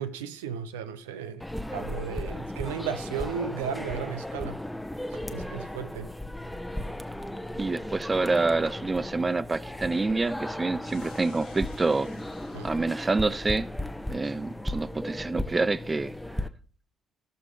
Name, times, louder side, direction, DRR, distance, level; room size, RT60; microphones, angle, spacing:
voice 1, 0.0-4.6 5.3-6.1 12.5-12.7, right 7 dB, 80° right, 0.6 m, -35 dB
sound 1, 1.4-16.5, left 1 dB, 5° left, 0.9 m, -36 dB
sound 2, 3.0-3.4 4.7-4.8 5.1-5.9 6.6-7.0 8.7-9.1, right 6 dB, 60° right, 1.1 m, -51 dB
voice 2, 7.6-12.1 12.6-13.7 14.1-16.1, right 3 dB, 25° right, 0.4 m, -27 dB
sound 3, 10.8-13.3, left 8 dB, 70° left, 1.8 m, -55 dB
16.0 x 6.6 x 3.4 m
figure-of-eight pair, 50°, 0 cm